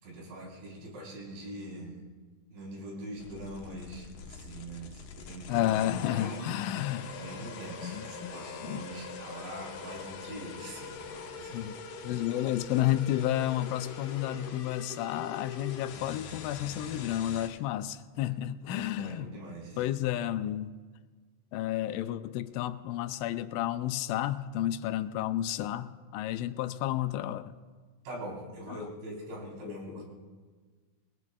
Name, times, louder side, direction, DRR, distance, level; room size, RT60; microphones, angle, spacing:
voice 1, 0.0-2.0 2.5-5.7 6.0-6.6 7.2-11.7 18.7-19.9 28.0-30.1, right 1 dB, 70° right, -3 dB, 6.2 m, -43 dB
sound 1, 3.2-17.5, left 5 dB, 70° left, 2.0 m, -43 dB
voice 2, 5.5-7.2 7.8-8.3 8.7-8.9 11.5-11.8 12.0-19.3 19.8-20.7 21.5-27.5 28.7-28.9 29.6-30.0, left 13 dB, 85° left, 11 dB, 3.0 m, -31 dB
27.5 x 20.5 x 2.3 m, 1.5 s
omnidirectional pair, 5.3 m